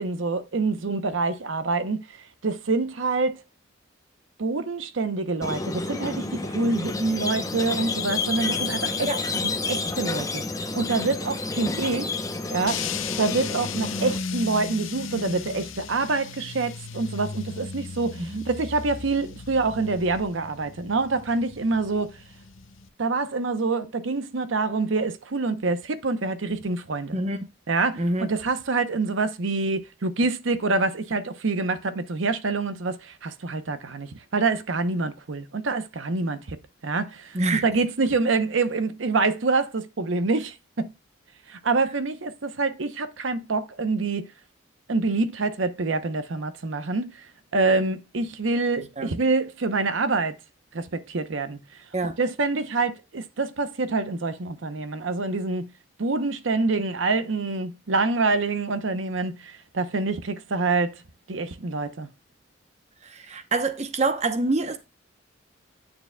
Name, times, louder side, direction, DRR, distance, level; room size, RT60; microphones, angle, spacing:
voice 1, 0.0-3.4 4.4-9.1 9.4-12.2 12.5-12.8 13.2-22.2 23.0-27.2 27.7-36.6 36.8-40.9 41.5-44.3 44.9-47.3 47.5-50.4 50.7-51.6 52.2-55.7 56.0-61.0 61.3-62.1, right 3 dB, 80° right, 0.7 m, -26 dB
Squeak, 5.4-14.2, left 3 dB, 20° left, 0.7 m, -30 dB
sound 1, 12.7-22.9, left 5 dB, 90° left, 0.7 m, -36 dB
voice 2, 28.0-28.3 37.3-37.6 49.0-49.1 51.9-52.2 63.0-64.8, right 2 dB, 35° right, 0.8 m, -26 dB
9.4 x 6.7 x 2.2 m
head